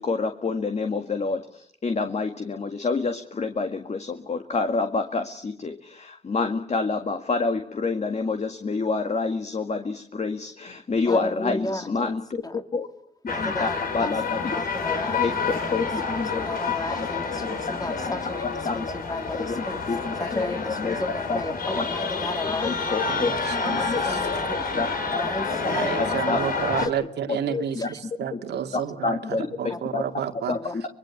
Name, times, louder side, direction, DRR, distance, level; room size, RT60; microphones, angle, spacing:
voice 1, 0.0-12.4 12.7-12.9 13.4-13.7 13.9-14.5 15.1-15.3 15.7-16.6 17.0-17.1 18.6-18.8 19.4-20.5 20.8-21.0 21.3-21.4 21.8-21.9 22.6-24.0 24.8-25.2 25.6-25.7 26.0-26.4 27.3-27.9 28.3-28.4 29.0-30.0 30.5-30.8, left 4 dB, 40° left, 6 dB, 1.9 m, -28 dB
voice 2, 11.0-12.1 12.4-12.6 13.3-14.1 14.4-15.9 16.2-24.7 25.1-27.1 27.8-28.0 29.7-29.8 30.5-30.9, left 2 dB, 20° left, 7 dB, 2.8 m, -34 dB
sound 1, 13.3-26.9, left 4 dB, 60° left, 4.3 m, -29 dB
voice 3, 23.1-23.8 25.7-29.2 29.6-30.5, right 9 dB, 75° right, 5 dB, 2.3 m, -30 dB
24.5 x 21.5 x 8.4 m, 0.67 s
cardioid pair, 65°, 17 cm